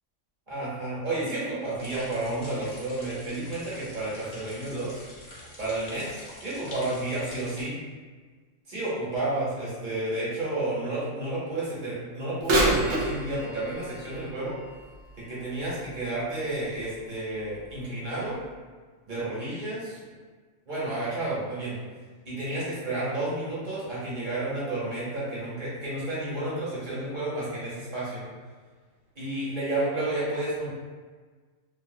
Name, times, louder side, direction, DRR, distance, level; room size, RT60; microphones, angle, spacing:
voice 1, 0.5-5.0 5.6-7.7 8.7-14.5 15.3-18.4 19.1-20.0 20.7-21.7 22.3-28.3 29.1-30.7, right 2 dB, 40° right, -9 dB, 1.2 m, -31 dB
Intense rain drops, 1.8-7.6, left 1 dB, 45° left, 0.9 m, -46 dB
Bird vocalization bird call bird song / Telephone, 12.4-16.2 16.8-16.9 17.7-17.8 18.4-18.5, right 1 dB, 70° right, 0.9 m, -29 dB
2.7 x 2.7 x 2.7 m, 1.4 s
omnidirectional pair, 1.3 m